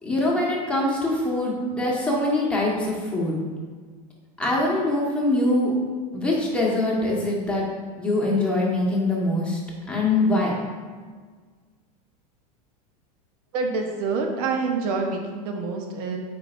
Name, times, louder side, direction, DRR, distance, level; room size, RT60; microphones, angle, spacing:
voice 1, 0.0-3.4 4.4-5.7 6.1-7.6 8.0-9.6 9.9-10.5, left 2 dB, 5° left, -5 dB, 1.5 m, -23 dB
voice 2, 13.5-16.2, right 4 dB, 70° right, 3 dB, 0.9 m, -27 dB
8.2 x 5.1 x 2.6 m, 1.5 s
supercardioid pair, 125°, 20 cm